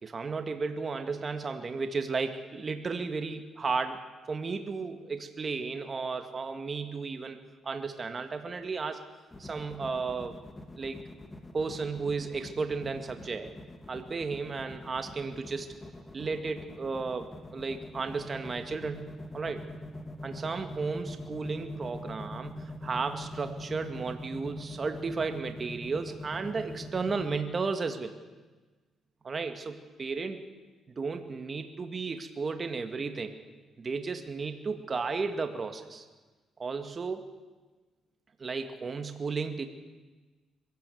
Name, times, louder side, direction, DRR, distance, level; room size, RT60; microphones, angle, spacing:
voice 1, 0.0-4.0 4.3-7.4 7.6-9.0 9.4-10.4 10.8-11.0 11.5-13.5 13.9-15.7 16.1-19.1 19.3-19.6 20.2-28.1 29.2-30.4 31.0-33.3 33.8-36.1 36.6-37.3 38.4-39.6, right 4 dB, 35° right, 7 dB, 2.0 m, -34 dB
sound 1, 9.3-27.4, left 1 dB, 20° left, 2.6 m, -43 dB
23.0 x 16.0 x 7.9 m, 1.3 s
cardioid pair, 90°, 0 cm